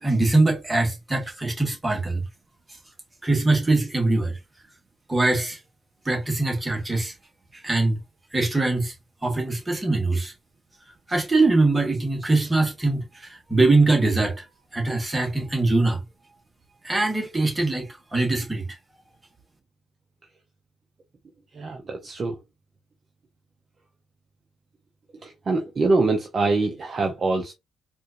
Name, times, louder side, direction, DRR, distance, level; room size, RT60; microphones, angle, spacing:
voice 1, 0.0-2.2 3.2-4.3 5.1-5.6 6.0-7.1 7.5-8.0 8.3-8.9 9.2-10.3 11.1-14.4 14.7-16.0 16.8-18.7, right 2 dB, 15° right, 1.4 m, -22 dB
voice 2, 21.6-22.3 25.2-27.5, right 3 dB, 40° right, 0.6 m, -24 dB
4.2 x 2.5 x 2.5 m
cardioid pair, 90°, 0 cm